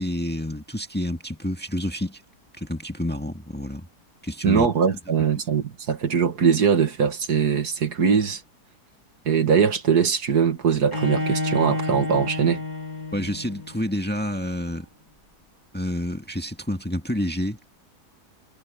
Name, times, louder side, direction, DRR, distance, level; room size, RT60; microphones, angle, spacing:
voice 1, 0.0-2.2 2.6-3.9 4.2-4.7 13.1-14.9 15.7-17.6, left 1 dB, 5° left, 1.7 m, -28 dB
voice 2, 4.4-8.4 9.3-12.6, right 6 dB, 70° right, 2.2 m, -21 dB
Bowed string instrument, 10.9-13.9, left 2 dB, 25° left, 2.7 m, -29 dB
omnidirectional pair, 1.8 m